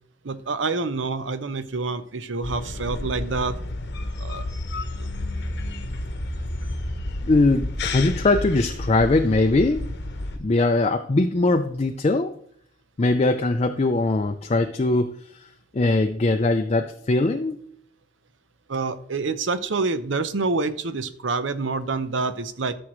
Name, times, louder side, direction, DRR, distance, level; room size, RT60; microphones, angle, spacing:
voice 1, 0.2-3.6 4.2-4.5 5.0-5.1 18.7-22.7, right 3 dB, 75° right, 13 dB, 0.7 m, -27 dB
sound 1, 2.4-10.4, left 2 dB, 60° left, 1.0 m, -31 dB
voice 2, 7.2-9.9 10.4-12.4 13.0-15.5 15.7-17.6, left 2 dB, 35° left, 6 dB, 0.4 m, -21 dB
13.5 x 6.2 x 3.1 m, 0.66 s
head